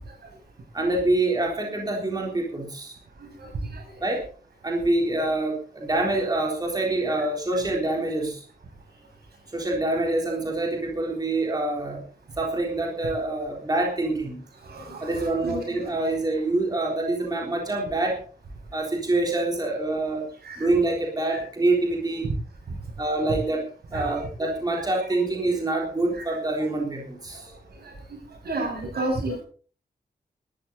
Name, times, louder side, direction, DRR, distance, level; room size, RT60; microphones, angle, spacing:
voice 1, 0.7-3.0 4.0-4.2 4.6-8.4 9.5-12.0 12.4-14.4 15.0-18.2 18.7-20.3 20.6-22.3 23.0-23.6 23.9-27.5, right 2 dB, 25° right, 0 dB, 3.8 m, -26 dB
voice 2, 3.2-3.8 14.6-15.0 15.4-15.6 20.5-20.6 23.9-24.1 27.8-27.9 28.4-29.4, right 2 dB, 85° right, 2 dB, 7.5 m, -30 dB
17.5 x 13.0 x 4.1 m, 0.42 s
wide cardioid pair, 165°, 16 cm